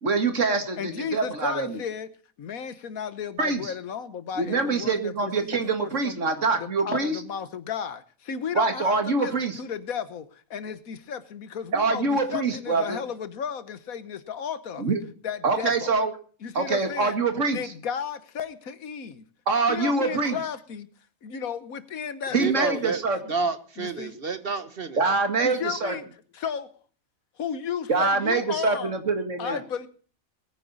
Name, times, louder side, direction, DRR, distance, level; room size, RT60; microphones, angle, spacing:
voice 1, 0.0-1.8 3.4-3.7 4.4-7.2 8.5-9.6 11.7-13.0 14.8-15.0 15.4-16.1 16.5-17.6 19.5-20.4 22.3-23.2 25.0-26.0 27.9-29.6, right 4 dB, 60° right, 7 dB, 2.3 m, -25 dB
voice 2, 0.8-2.1 2.4-6.2 6.6-15.0 15.2-15.9 16.4-17.2 17.5-19.2 19.7-20.9 21.2-23.0 23.8-24.2 25.4-26.1 26.3-26.7 27.4-29.0 29.4-29.9, left 7 dB, 90° left, 13 dB, 1.6 m, -34 dB
voice 3, 22.4-23.0 23.3-25.0, right 4 dB, 45° right, 11 dB, 1.4 m, -29 dB
21.0 x 9.7 x 4.1 m, 0.43 s
omnidirectional pair, 1.4 m